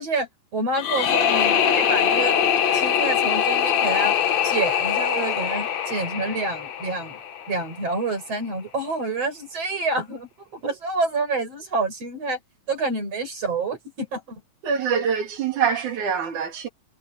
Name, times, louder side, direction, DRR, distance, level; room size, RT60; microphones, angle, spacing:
voice 1, 0.0-2.4 2.7-4.2 4.4-7.2 7.5-12.4 12.7-14.4, right 3 dB, 55° right, 7.3 m, -28 dB
sound 1, 0.7-7.7, left 8 dB, 65° left, 2.8 m, -22 dB
voice 2, 14.6-16.7, right 7 dB, 80° right, 4.1 m, -24 dB
omnidirectional pair, 3.4 m